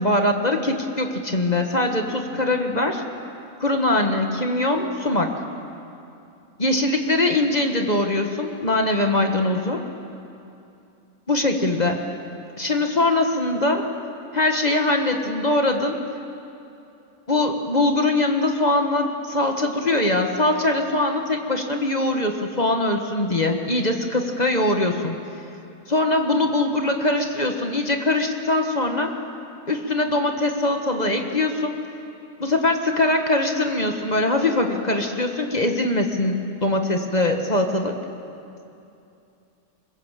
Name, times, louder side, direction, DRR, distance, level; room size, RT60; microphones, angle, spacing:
voice 1, 0.0-3.0 3.6-5.3 6.6-9.8 11.3-12.0 12.6-13.8 14.3-16.0 17.3-25.2 25.9-29.1 29.7-31.8 32.4-38.0, left 2 dB, 30° left, 4 dB, 1.5 m, -22 dB
24.5 x 21.5 x 7.5 m, 2.7 s
omnidirectional pair, 1.5 m